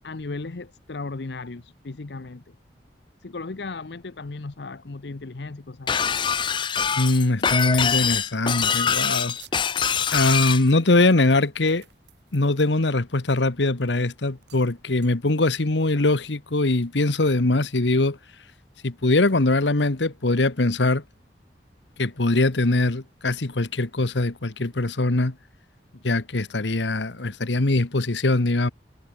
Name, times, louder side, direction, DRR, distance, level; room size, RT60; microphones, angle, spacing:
voice 1, 0.0-2.4 3.2-6.0, left 3 dB, 70° left, 0.8 m, -36 dB
Shatter, 5.9-10.6, left 7 dB, 25° left, 0.4 m, -24 dB
voice 2, 6.9-9.3 10.1-11.8 12.3-18.2 18.8-21.0 22.0-25.3 26.0-28.7, left 2 dB, 85° left, 1.3 m, -22 dB
sound 1, 8.9-9.7 10.3-13.4 13.8-14.0 14.4-14.8 15.0-15.1, right 12 dB, 75° right, 5.6 m, -53 dB
head